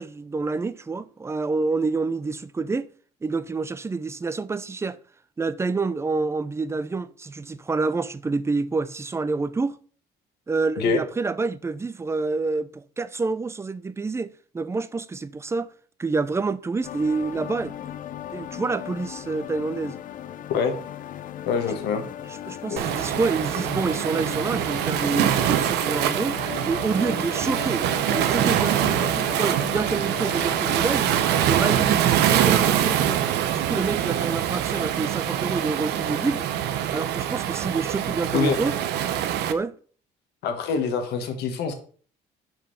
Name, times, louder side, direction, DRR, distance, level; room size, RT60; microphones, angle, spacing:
voice 1, 0.0-2.9 3.2-5.0 5.4-9.8 10.5-15.7 16.0-17.7 18.3-20.0 22.3-26.4 26.6-27.8 28.1-31.1 31.5-33.3 33.5-36.5 36.9-38.7 39.5-39.8, right 3 dB, 15° right, 0.5 m, -27 dB
sound 1, 16.8-31.9, left 10 dB, 50° left, 0.6 m, -37 dB
voice 2, 21.5-22.0 22.7-22.8 38.3-38.6 40.4-41.7, left 6 dB, 75° left, 1.6 m, -25 dB
Waves surf, 22.8-39.5, right 10 dB, 85° right, 0.8 m, -24 dB
6.3 x 5.3 x 5.5 m
cardioid pair, 110°, 17 cm